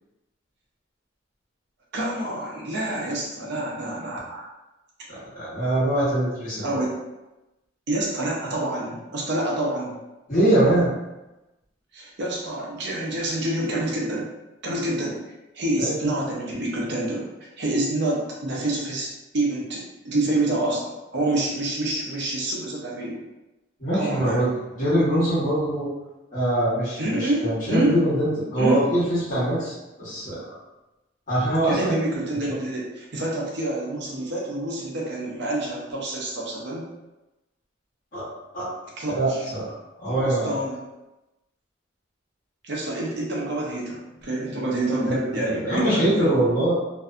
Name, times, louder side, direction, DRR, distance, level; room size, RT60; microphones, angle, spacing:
voice 1, 1.9-4.5 6.6-7.0 7.9-10.0 11.9-14.3 14.6-15.2 15.5-23.2 23.9-24.4 27.0-28.0 28.5-28.8 31.7-36.9 39.0-39.4 40.0-40.8 42.6-46.3, right 1 dB, 65° right, -4 dB, 0.6 m, -27 dB
voice 2, 5.1-6.6 10.3-10.9 15.8-15.9 23.8-24.5 24.8-25.9 26.3-30.4 31.3-31.9 32.5-32.6 38.1-38.2 38.5-38.7 39.1-39.7 40.0-40.6 45.4-46.7, right 1 dB, 45° left, -11 dB, 1.1 m, -23 dB
2.6 x 2.2 x 2.4 m, 1.0 s
head